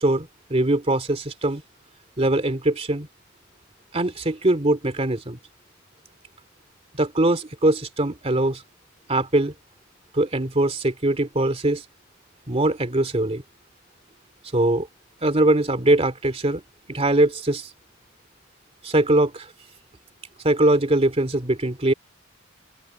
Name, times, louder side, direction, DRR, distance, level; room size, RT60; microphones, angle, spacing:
voice 1, 0.0-1.6 2.2-3.1 3.9-5.4 7.0-8.6 9.1-9.5 10.1-11.8 12.5-13.4 14.5-14.9 15.2-16.6 16.9-17.7 18.8-19.5 20.4-21.9, right 1 dB, 30° right, 2.6 m, -21 dB
open air
head